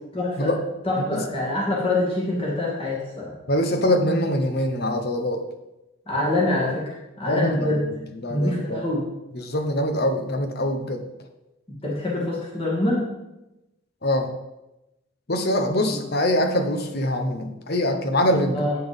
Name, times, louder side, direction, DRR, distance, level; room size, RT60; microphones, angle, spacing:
voice 1, 0.1-0.5 0.8-3.3 6.1-7.8 8.3-9.0 11.8-13.1 15.8-15.9 18.5-18.8, left 1 dB, 25° left, -4 dB, 2.4 m, -25 dB
voice 2, 3.5-5.4 7.3-7.8 8.1-8.8 9.3-11.1 14.0-14.3 15.3-18.6, left 1 dB, 45° left, 6 dB, 1.0 m, -23 dB
9.1 x 5.9 x 5.4 m, 0.95 s
head